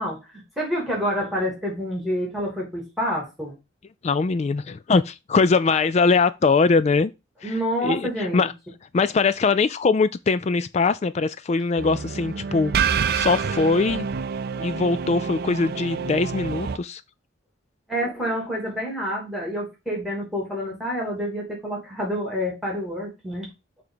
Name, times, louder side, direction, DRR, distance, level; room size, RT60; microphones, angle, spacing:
voice 1, 0.0-3.6 7.4-8.5 17.9-23.5, equal, ahead, 2.9 m, -28 dB
voice 2, 4.0-7.1 7.4-7.5 7.8-8.5 8.9-12.7 13.1-14.1 14.6-17.0, left 4 dB, 35° left, 0.3 m, -21 dB
sound 1, 11.8-16.8, right 6 dB, 55° right, 0.5 m, -27 dB
6.8 x 3.6 x 5.7 m
head